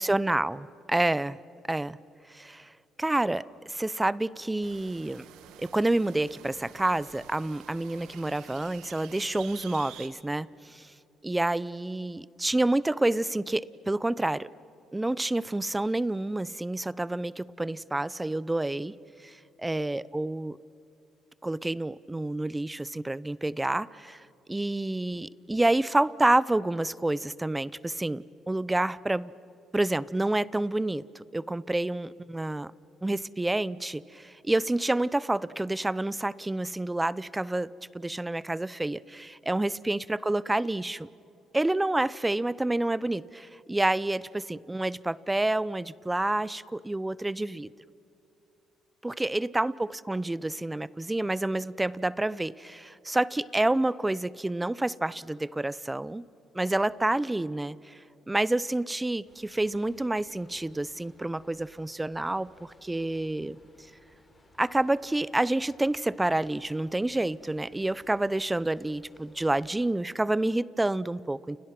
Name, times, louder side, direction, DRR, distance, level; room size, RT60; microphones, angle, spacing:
voice 1, 0.0-1.4 1.7-2.0 2.3-2.7 3.0-5.2 5.6-10.9 11.2-14.5 14.9-18.9 19.2-20.6 21.4-29.3 29.7-32.7 33.0-41.1 41.5-47.7 49.0-56.2 56.5-58.0 58.3-63.6 64.6-71.6, right 2 dB, 10° right, 20 dB, 0.7 m, -28 dB
sound 1, 4.6-10.1, right 10 dB, 85° right, 1.8 m, -49 dB
sound 2, 59.3-69.7, left 1 dB, 20° left, 5.6 m, -61 dB
30.0 x 29.5 x 6.0 m, 2.7 s
cardioid pair, 85°, 0 cm